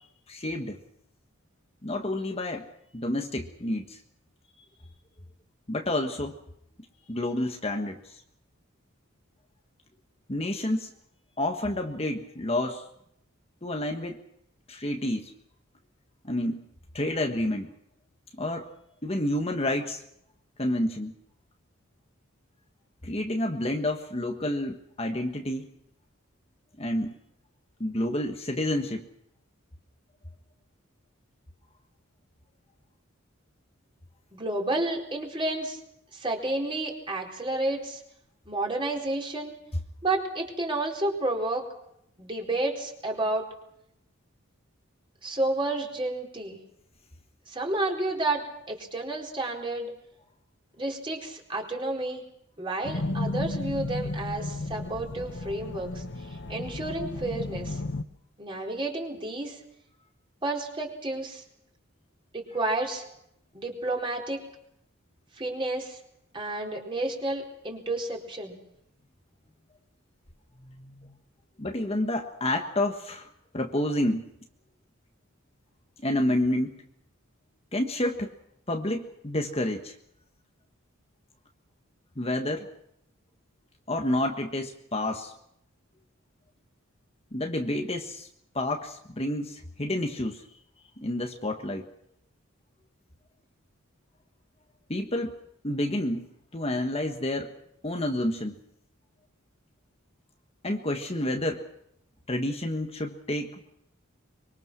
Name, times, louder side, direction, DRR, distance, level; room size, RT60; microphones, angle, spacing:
voice 1, 0.3-0.8 1.8-2.7 2.9-4.0 5.7-6.4 7.1-8.1 10.3-10.9 11.4-12.9 13.6-14.2 14.7-15.3 16.2-16.7 16.9-17.7 18.4-18.7 19.0-20.0 20.6-21.1 23.0-25.7 26.8-27.1 27.8-29.1 70.6-71.1 71.6-74.3 76.0-76.8 77.7-78.3 78.7-79.9 82.2-82.7 83.9-85.3 87.3-88.3 88.5-90.4 91.0-91.9 94.9-95.3 95.6-97.5 97.8-98.6 100.6-101.7 102.3-103.6, left 1 dB, 30° left, 3 dB, 1.5 m, -29 dB
voice 2, 34.3-35.8 36.1-38.0 38.5-39.6 40.0-41.7 42.2-43.5 45.2-46.6 47.5-49.9 50.8-52.2 52.6-57.8 58.4-59.6 60.4-61.4 62.3-63.0 63.5-64.4 65.3-66.0 66.3-68.6, right 2 dB, 25° right, 0 dB, 4.3 m, -31 dB
sound 1, 52.8-58.0, left 2 dB, 60° left, 1.1 m, -33 dB
24.5 x 23.5 x 6.2 m, 0.75 s
head